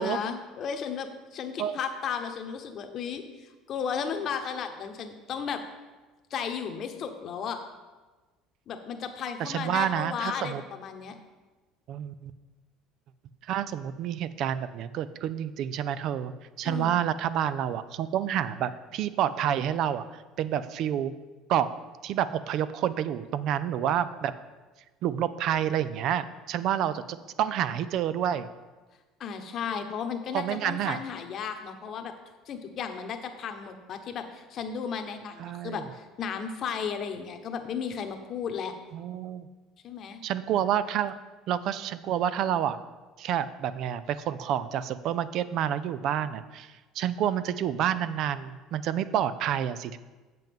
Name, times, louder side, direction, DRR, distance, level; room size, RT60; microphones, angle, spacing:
voice 1, 0.0-5.6 6.3-7.6 8.7-11.2 16.6-17.0 29.2-32.1 32.5-38.7 39.8-40.2, left 6 dB, 50° left, 6 dB, 0.9 m, -34 dB
voice 2, 9.4-10.6 11.9-12.3 13.5-16.3 16.6-21.1 21.5-21.7 22.0-24.3 25.0-28.5 30.3-31.0 35.4-35.8 38.9-39.5 40.2-41.2 41.5-42.8 43.2-50.0, right 10 dB, 60° right, 14 dB, 0.4 m, -29 dB
7.6 x 7.5 x 3.6 m, 1.3 s
supercardioid pair, 90°, 0 cm